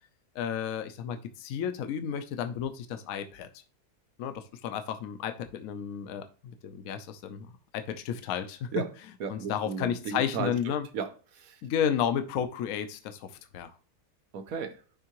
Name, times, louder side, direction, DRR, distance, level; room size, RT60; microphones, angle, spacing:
voice 1, 0.4-3.5 4.2-6.2 6.6-7.5 7.7-8.7 9.3-10.9 11.6-13.7, left 8 dB, 70° left, 1.0 m, -32 dB
voice 2, 9.2-10.5 10.9-11.6 14.3-14.8, right 6 dB, 65° right, 1.3 m, -34 dB
10.0 x 3.5 x 3.0 m
omnidirectional pair, 1.6 m